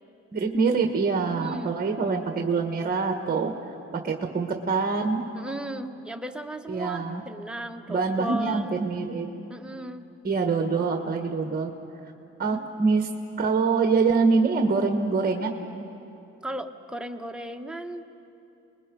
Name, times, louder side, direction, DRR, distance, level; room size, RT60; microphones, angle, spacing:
voice 1, 0.3-3.5 3.9-5.2 6.7-7.2 7.9-9.3 10.2-11.7 12.4-13.1 13.4-15.5, right 4 dB, 30° right, 4 dB, 1.4 m, -25 dB
voice 2, 1.3-1.8 5.3-8.7 9.5-10.1 12.5-12.7 16.4-18.0, right 1 dB, 5° right, 5 dB, 1.1 m, -36 dB
27.5 x 20.5 x 5.3 m, 2.8 s
cardioid pair, 90°, 30 cm